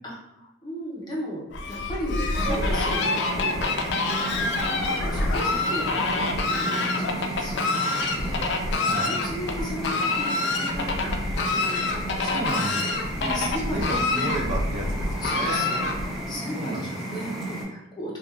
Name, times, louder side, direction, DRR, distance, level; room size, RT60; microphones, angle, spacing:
voice 1, 0.0-1.4 1.7-3.9 4.3-11.8 12.2-12.8 13.3-14.5 15.2-18.2, equal, 20° left, -4 dB, 0.6 m, -36 dB
Fowl, 1.5-16.3, left 3 dB, 60° left, 0.3 m, -27 dB
sound 1, 2.3-17.6, right 1 dB, ahead, 1.2 m, -33 dB
Keyboard (musical), 2.5-4.9, right 8 dB, 70° right, 0.9 m, -41 dB
voice 2, 8.8-9.2 11.6-11.7 12.2-15.7 16.5-17.2, right 1 dB, 40° right, 0 dB, 0.4 m, -32 dB
2.4 x 2.2 x 3.4 m, 0.93 s
head